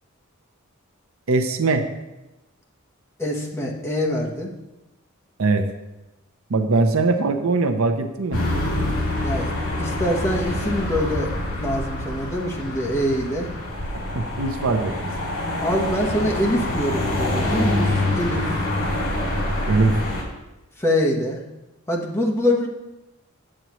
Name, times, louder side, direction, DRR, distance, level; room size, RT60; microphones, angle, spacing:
voice 1, 1.3-1.9 5.4-5.7 6.5-8.4 14.1-15.1 19.7-20.0, right 3 dB, 70° right, 7 dB, 0.7 m, -21 dB
voice 2, 3.2-4.5 9.2-9.5 9.8-11.3 11.6-13.5 15.6-18.7 20.8-21.4 21.9-22.7, left 1 dB, 15° left, -2 dB, 1.1 m, -24 dB
sound 1, 8.3-20.2, left 1 dB, 75° left, 2.2 m, -26 dB
8.6 x 8.0 x 3.1 m, 1.0 s
head